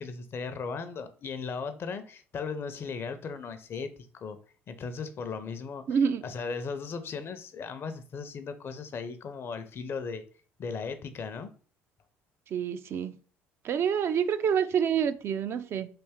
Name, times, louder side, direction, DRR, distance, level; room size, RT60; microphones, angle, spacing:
voice 1, 0.0-4.4 4.7-5.8 6.2-10.2 10.6-11.5, left 5 dB, 45° left, 0.5 m, -37 dB
voice 2, 5.9-6.3 12.5-13.1 13.6-15.9, right 7 dB, 50° right, 0.3 m, -27 dB
3.3 x 2.6 x 3.4 m
supercardioid pair, 70°, 6 cm